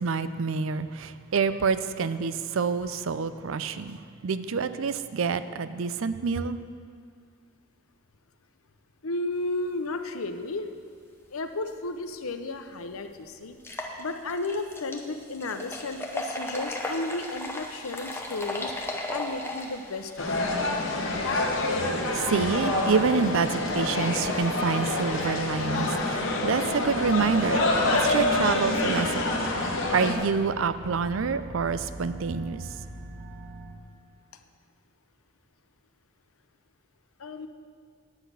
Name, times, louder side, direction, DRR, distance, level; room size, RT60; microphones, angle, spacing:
voice 1, 0.0-6.6 21.8-27.7 28.0-32.7, right 5 dB, 70° right, 13 dB, 0.4 m, -27 dB
voice 2, 9.0-10.7 11.3-20.4 37.2-37.5, left 2 dB, 85° left, 8 dB, 0.7 m, -33 dB
sound 1, 12.3-12.4 12.8-12.9 13.5-26.3, left 1 dB, 10° left, 0.9 m, -38 dB
sound 2, 20.2-30.1, left 2 dB, 65° left, 1.4 m, -27 dB
sound 3, 26.9-33.7, right 1 dB, 20° right, 1.7 m, -43 dB
9.8 x 5.9 x 8.2 m, 2.1 s
head